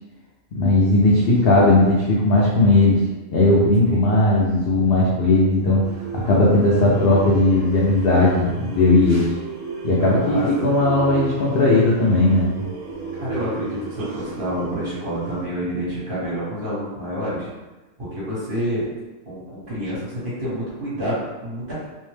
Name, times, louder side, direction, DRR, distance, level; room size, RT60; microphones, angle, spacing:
voice 1, 0.5-3.0 3.3-5.8 6.1-9.3 9.8-12.5, left 2 dB, 65° left, -6 dB, 0.6 m, -17 dB
sound 1, 5.8-15.5, right 3 dB, 65° right, 0.9 m, -33 dB
voice 2, 10.0-10.5 13.2-17.5 18.0-18.8 19.2-21.9, equal, 40° right, -10 dB, 1.3 m, -28 dB
2.7 x 2.1 x 3.1 m, 1.2 s
omnidirectional pair, 1.5 m